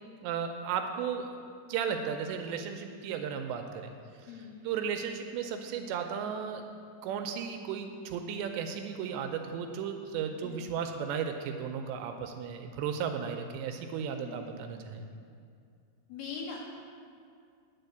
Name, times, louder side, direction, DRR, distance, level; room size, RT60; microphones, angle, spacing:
voice 1, 0.2-1.3 1.7-3.9 4.7-6.6 7.0-15.0, right 7 dB, 80° right, 5 dB, 2.7 m, -35 dB
voice 2, 4.3-4.9 10.4-10.8 14.2-14.8 16.1-16.6, left 5 dB, 75° left, -1 dB, 2.6 m, -43 dB
9.7 x 4.9 x 7.9 m, 2.3 s
omnidirectional pair, 5.2 m